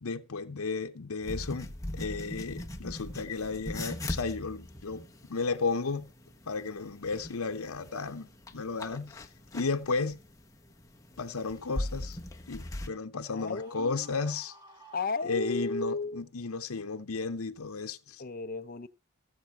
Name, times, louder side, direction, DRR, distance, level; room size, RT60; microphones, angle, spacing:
voice 1, 0.0-6.1 6.5-9.2 9.5-10.2 11.2-12.2 12.5-14.5 15.2-18.2, left 4 dB, 80° left, 0.8 m, -34 dB
sound 1, 1.2-12.9, left 1 dB, 15° left, 1.2 m, -41 dB
Screaming, 13.2-15.9, right 1 dB, 20° right, 2.1 m, -54 dB
voice 2, 13.3-14.1 14.9-16.2 18.2-18.9, left 3 dB, 40° left, 0.6 m, -34 dB
16.0 x 7.3 x 4.7 m
head